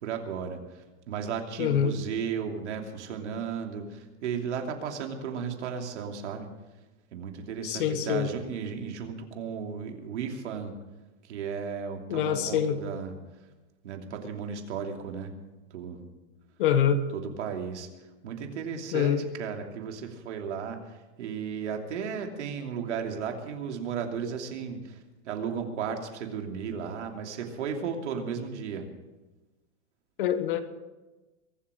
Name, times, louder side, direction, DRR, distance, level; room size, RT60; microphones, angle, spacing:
voice 1, 0.0-6.5 7.1-10.7 11.2-13.1 13.8-15.3 15.7-16.0 17.1-17.9 18.2-28.9, right 6 dB, 75° right, 3 dB, 2.8 m, -35 dB
voice 2, 1.6-1.9 7.6-8.3 12.1-12.8 16.6-17.0 18.9-19.2 30.2-30.6, left 9 dB, 45° left, 10 dB, 1.4 m, -25 dB
23.0 x 8.5 x 6.4 m, 1.1 s
supercardioid pair, 180°, 35 cm